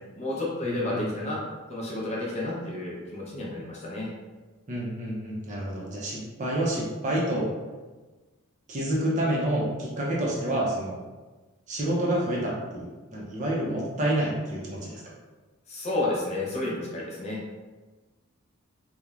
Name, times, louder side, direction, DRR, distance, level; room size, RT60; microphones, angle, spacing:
voice 1, 0.1-1.4 1.7-4.1 15.7-17.4, left 2 dB, 30° left, -5 dB, 0.5 m, -31 dB
voice 2, 0.6-1.3 4.7-7.5 8.7-11.0 11.7-15.0, right 1 dB, 35° right, -4 dB, 0.4 m, -28 dB
3.0 x 2.1 x 2.3 m, 1.3 s
head